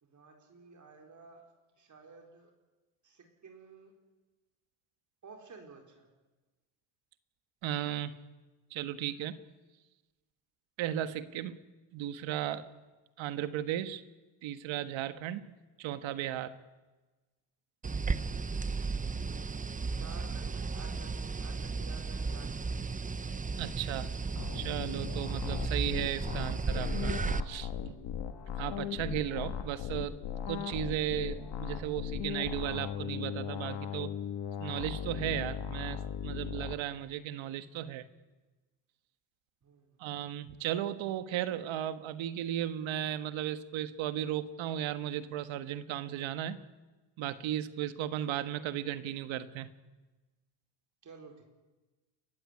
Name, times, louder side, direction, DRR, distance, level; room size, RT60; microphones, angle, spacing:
voice 1, 0.0-1.5 1.8-2.5 3.0-3.9 5.2-6.1 20.0-22.7 39.6-40.0 51.0-51.4, right 4 dB, 40° right, 2 dB, 4.4 m, -53 dB
voice 2, 7.6-8.1 8.7-9.4 10.8-11.6 11.9-12.7 13.2-14.0 14.4-15.4 15.8-16.6 23.6-24.1 24.5-27.1 27.4-28.0 28.6-30.1 30.5-34.1 34.6-38.1 40.0-46.6 47.2-49.7, right 11 dB, 75° right, 12 dB, 1.5 m, -35 dB
sound 1, 17.8-27.4, right 4 dB, 15° right, 0.8 m, -34 dB
sound 2, 24.3-36.7, left 8 dB, 60° left, 2.5 m, -38 dB
30.0 x 15.0 x 9.8 m, 1.2 s
cardioid pair, 110°, 47 cm